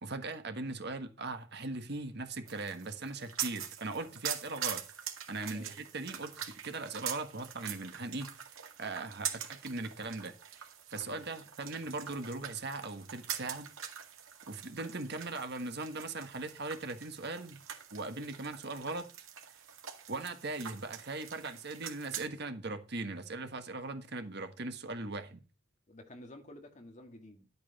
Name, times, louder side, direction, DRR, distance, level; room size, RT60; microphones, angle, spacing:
voice 1, 0.0-4.8 5.3-8.3 8.8-13.7 14.5-17.6 17.9-19.1 20.1-25.4, right 3 dB, 55° right, 1.5 m, -39 dB
sound 1, 2.5-22.3, right 9 dB, 85° right, 2.1 m, -44 dB
voice 2, 11.0-11.4 25.9-27.5, left 1 dB, 35° left, 2.0 m, -52 dB
11.5 x 8.5 x 4.2 m
head